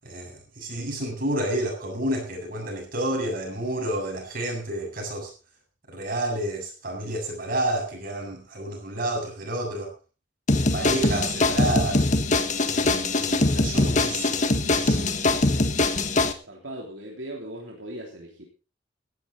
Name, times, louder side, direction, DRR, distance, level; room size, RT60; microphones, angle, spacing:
voice 1, 0.0-5.3 5.9-9.9 10.7-12.0 12.7-15.1, right 1 dB, 50° right, 1 dB, 7.5 m, -30 dB
sound 1, 10.5-16.3, left 2 dB, 40° left, 1.6 m, -22 dB
voice 2, 16.4-18.5, right 1 dB, 80° right, 0 dB, 3.3 m, -38 dB
17.5 x 13.0 x 4.0 m, 0.34 s
head